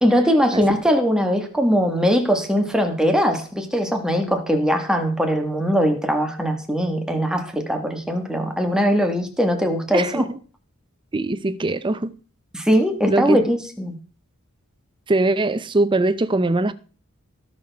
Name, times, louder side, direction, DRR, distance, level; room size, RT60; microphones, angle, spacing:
voice 1, 0.0-10.2 12.5-13.9, equal, 5° right, 1.4 m, -21 dB
voice 2, 9.9-10.4 11.1-12.1 13.1-13.4 15.1-16.7, right 2 dB, 25° right, 0.5 m, -21 dB
17.0 x 6.5 x 3.5 m
head